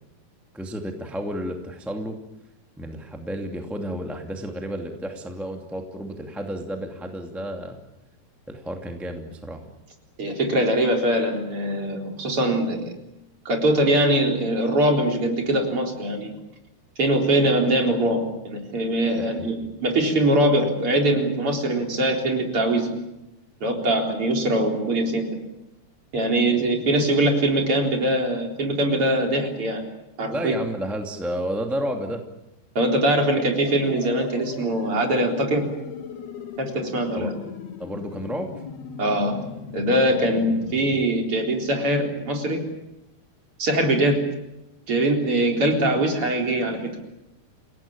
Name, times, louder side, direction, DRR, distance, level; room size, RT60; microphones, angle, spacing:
voice 1, 0.5-2.2 2.8-7.8 8.5-9.6 19.2-19.6 30.3-32.2 37.1-37.3 37.8-38.5, equal, ahead, 3 dB, 1.5 m, -31 dB
voice 2, 10.2-12.8 13.4-16.3 17.0-19.6 19.8-22.9 23.6-25.3 26.1-29.8 30.2-30.5 32.7-35.6 36.6-37.3 39.0-39.4 39.7-42.6 43.6-44.2 44.9-46.9, right 1 dB, 35° right, 2 dB, 4.5 m, -22 dB
sound 1, 33.6-41.0, left 7 dB, 75° left, 3.9 m, -38 dB
29.5 x 17.5 x 8.8 m, 0.91 s
omnidirectional pair, 4.6 m